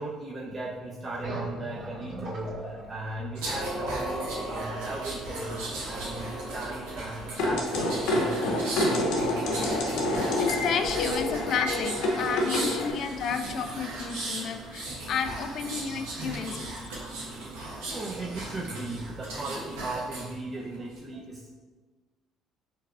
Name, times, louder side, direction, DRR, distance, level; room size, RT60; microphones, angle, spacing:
voice 1, 0.0-5.6 5.9-9.2 12.9-13.0 17.9-21.5, right 2 dB, 30° right, -5 dB, 0.6 m, -37 dB
sound 1, 1.2-8.4, right 2 dB, 70° right, 1.5 m, -42 dB
sound 2, 3.3-20.3 20.7-21.0, right 2 dB, 90° right, 0.9 m, -36 dB
sound 3, 7.4-12.9, left 1 dB, 75° left, 0.7 m, -27 dB
voice 2, 10.4-16.7, left 6 dB, 60° left, 7 dB, 0.3 m, -31 dB
4.6 x 3.2 x 2.4 m, 1.4 s
supercardioid pair, 75°, 0 cm